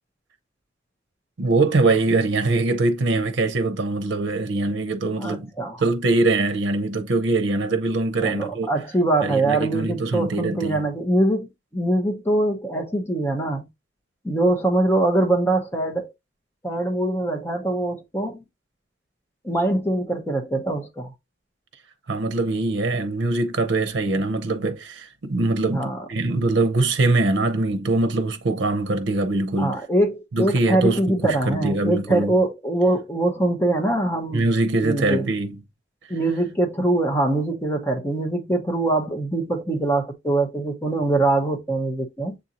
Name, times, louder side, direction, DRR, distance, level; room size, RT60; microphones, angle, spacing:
voice 1, 1.4-5.5 5.8-8.7 9.2-10.8 22.1-29.8 30.3-32.3 34.3-35.6, right 2 dB, 85° right, 0.6 m, -23 dB
voice 2, 5.2-5.8 8.2-13.7 14.2-16.1 16.6-18.4 19.4-21.1 25.6-26.0 29.6-34.5 34.8-35.3 36.1-42.4, right 2 dB, 15° left, 0.9 m, -23 dB
7.1 x 2.6 x 2.8 m
head